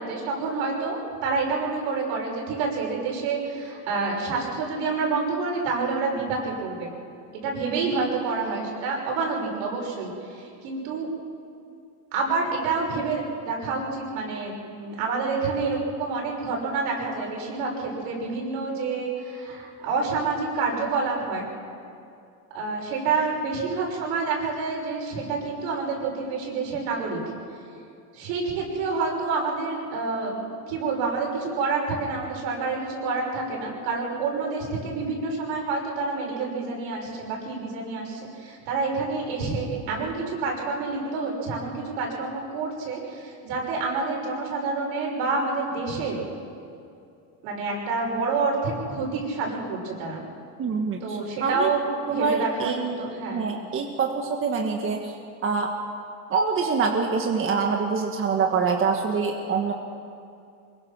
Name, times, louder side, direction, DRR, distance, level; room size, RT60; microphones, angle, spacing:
voice 1, 0.0-6.9 7.4-11.1 12.1-21.5 22.5-27.2 28.1-46.2 47.4-50.2 51.0-53.5, right 4 dB, 75° right, -1 dB, 6.2 m, -28 dB
voice 2, 50.6-51.7 52.1-53.0 53.3-55.2 55.4-55.7 56.3-59.7, right 5 dB, 30° right, 2 dB, 1.5 m, -25 dB
24.5 x 22.0 x 6.0 m, 2.5 s
cardioid pair, 135°, 42 cm